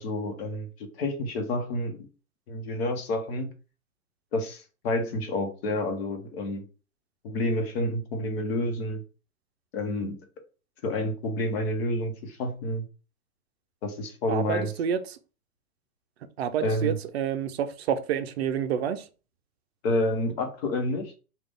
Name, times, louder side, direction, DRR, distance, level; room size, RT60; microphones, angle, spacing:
voice 1, 0.0-2.1 2.5-3.5 4.3-6.6 7.2-9.0 9.7-10.2 10.8-12.9 13.8-14.7 16.6-17.0 19.8-21.1, left 1 dB, 45° left, 1.0 m, -29 dB
voice 2, 14.3-15.2 16.4-19.0, right 8 dB, 45° right, 0.6 m, -28 dB
3.3 x 2.4 x 3.7 m
hypercardioid pair, 130°, 44 cm